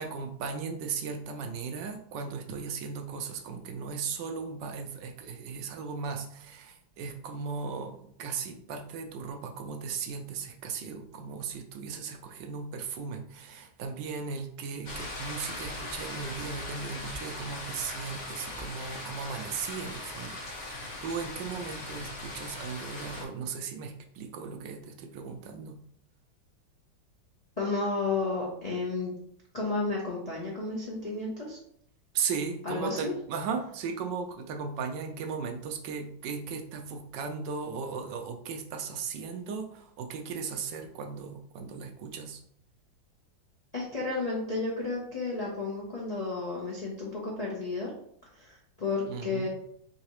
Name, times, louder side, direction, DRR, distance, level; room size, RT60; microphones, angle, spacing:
voice 1, 0.0-25.8 32.1-42.4 49.1-49.5, right 5 dB, 75° right, 4 dB, 1.1 m, -37 dB
sound 1, 14.8-23.2, left 2 dB, 35° left, 0.8 m, -39 dB
voice 2, 27.6-29.1 29.5-31.6 32.6-33.1 43.7-47.9 48.4-49.5, left 3 dB, 70° left, -5 dB, 0.3 m, -32 dB
3.8 x 3.5 x 3.0 m, 0.67 s
omnidirectional pair, 2.1 m